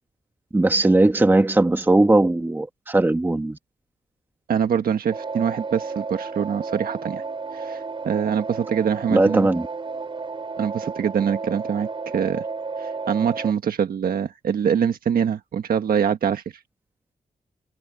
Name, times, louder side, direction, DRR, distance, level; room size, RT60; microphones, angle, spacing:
voice 1, 0.5-3.6 9.1-9.7, right 2 dB, 15° right, 1.4 m, -18 dB
voice 2, 4.5-7.2 7.5-9.5 10.6-11.9 12.1-12.4 12.8-16.4, right 8 dB, 85° right, 1.4 m, -24 dB
sound 1, 5.1-13.5, right 4 dB, 35° right, 5.0 m, -32 dB
wide cardioid pair, 165°, 15 cm